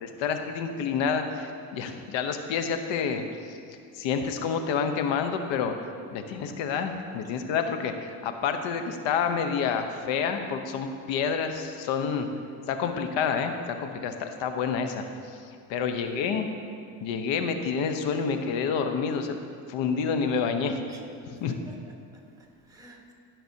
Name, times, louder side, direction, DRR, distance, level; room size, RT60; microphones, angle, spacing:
voice 1, 0.0-5.7 6.1-12.3 12.7-16.5 17.0-19.4 19.7-20.8 21.3-21.6, left 6 dB, 60° left, 7 dB, 0.9 m, -29 dB
voice 2, 15.9-16.3 20.6-21.0 21.5-23.1, right 2 dB, 5° right, 0 dB, 1.6 m, -48 dB
15.5 x 5.9 x 2.8 m, 2.3 s
supercardioid pair, 85°, 49 cm